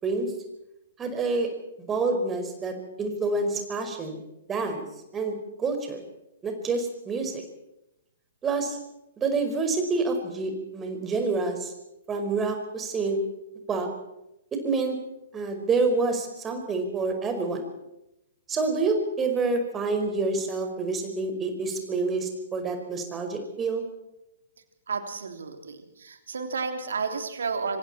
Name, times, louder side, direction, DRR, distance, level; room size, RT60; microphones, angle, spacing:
voice 1, 1.0-1.5 1.8-4.2 4.5-4.9 5.1-6.0 6.4-7.4 8.4-8.8 9.2-11.7 12.1-13.2 13.7-13.9 14.6-15.0 15.3-17.7 18.5-23.8, right 3 dB, 20° right, 4 dB, 5.3 m, -27 dB
voice 2, 24.9-27.8, right 4 dB, 70° right, 6 dB, 3.2 m, -32 dB
26.0 x 25.5 x 4.5 m, 0.89 s
figure-of-eight pair, 115°, 0 cm